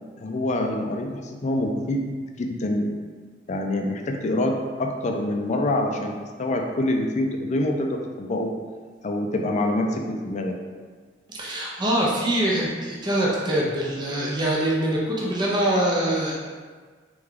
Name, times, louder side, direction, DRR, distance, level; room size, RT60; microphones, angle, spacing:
voice 1, 0.2-2.9 3.5-4.5 4.8-6.1 6.4-8.5 9.0-10.5, left 1 dB, 40° left, 3 dB, 0.4 m, -25 dB
voice 2, 11.3-16.4, right 1 dB, 25° right, -4 dB, 0.6 m, -24 dB
3.4 x 3.3 x 3.6 m, 1.5 s
head